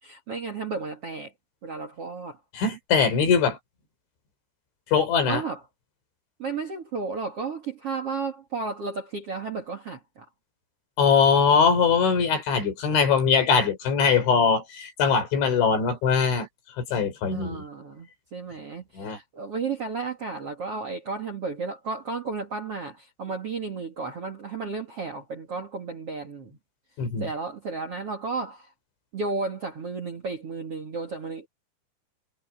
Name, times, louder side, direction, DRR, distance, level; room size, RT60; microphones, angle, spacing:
voice 1, 0.0-1.3 1.6-2.4 5.2-5.6 6.4-10.3 17.3-26.6 27.2-28.7 29.1-31.5, right 4 dB, 45° right, 2.3 m, -33 dB
voice 2, 2.5-3.6 4.9-5.4 11.0-16.5 16.8-17.6 19.0-19.2 27.0-27.3, left 6 dB, 70° left, 7.2 m, -22 dB
omnidirectional pair, 5.5 m